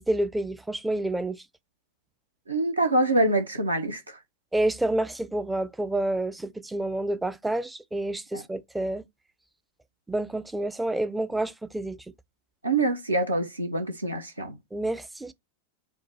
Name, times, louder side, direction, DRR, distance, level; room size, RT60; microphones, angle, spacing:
voice 1, 0.0-1.4 4.5-9.0 10.1-12.0 14.7-15.3, right 1 dB, 5° right, 0.4 m, -28 dB
voice 2, 2.5-4.2 8.3-8.4 12.6-14.5, right 2 dB, 80° right, 0.7 m, -25 dB
4.6 x 2.2 x 3.9 m
figure-of-eight pair, 90°, 0 cm